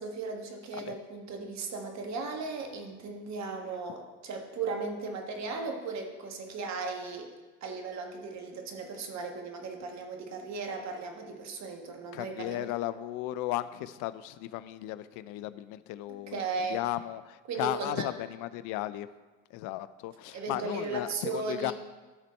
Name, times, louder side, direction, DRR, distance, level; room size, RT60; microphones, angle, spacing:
voice 1, 0.0-7.3 7.6-12.7 16.1-16.8 17.5-18.1 20.3-21.7, right 4 dB, 55° right, 3 dB, 1.5 m, -36 dB
voice 2, 12.1-16.4 16.7-19.1 19.5-21.7, left 15 dB, 70° left, 15 dB, 0.5 m, -35 dB
12.5 x 4.1 x 4.3 m, 1.2 s
hypercardioid pair, 70°, 32 cm